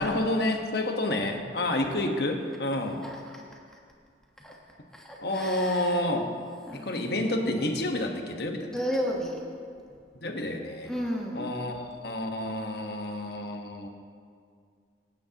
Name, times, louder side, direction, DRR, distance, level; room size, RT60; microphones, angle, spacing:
voice 1, 0.0-3.0 5.2-6.3 6.7-8.7 10.2-10.9 11.3-13.9, left 1 dB, 60° left, 3 dB, 1.3 m, -29 dB
voice 2, 3.0-3.4 4.4-4.6 4.9-6.0 6.7-7.2 8.6-9.5 10.8-11.6, equal, 5° left, -2 dB, 1.3 m, -34 dB
25.5 x 9.6 x 3.0 m, 2.2 s
head